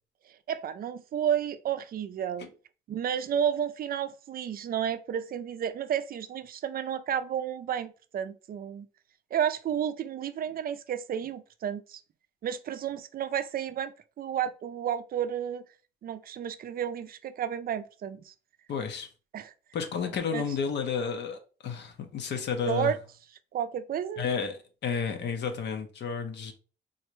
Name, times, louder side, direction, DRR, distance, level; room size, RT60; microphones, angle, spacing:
voice 1, 0.5-2.5 2.9-8.9 9.3-12.0 12.4-15.6 16.0-18.3 19.3-19.5 20.3-20.4 22.7-23.0 23.5-24.2, right 9 dB, 50° right, 0.4 m, -31 dB
voice 2, 18.7-19.1 19.7-22.9 24.2-26.5, left 6 dB, 60° left, 0.6 m, -31 dB
3.8 x 2.1 x 3.0 m
cardioid pair, 90°, 20 cm